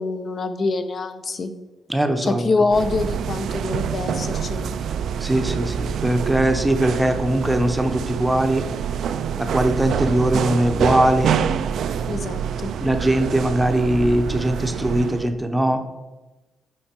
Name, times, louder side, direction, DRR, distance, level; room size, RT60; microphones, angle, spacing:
voice 1, 0.0-1.5 2.2-4.8 12.1-12.7, left 3 dB, 40° left, 8 dB, 0.5 m, -25 dB
voice 2, 1.9-2.5 5.2-8.6 9.4-11.3 12.8-15.8, right 1 dB, 5° right, 6 dB, 0.7 m, -21 dB
sound 1, 2.7-15.3, right 7 dB, 70° right, 0.4 m, -26 dB
9.1 x 4.3 x 4.4 m, 1.1 s
cardioid pair, 125°, 0 cm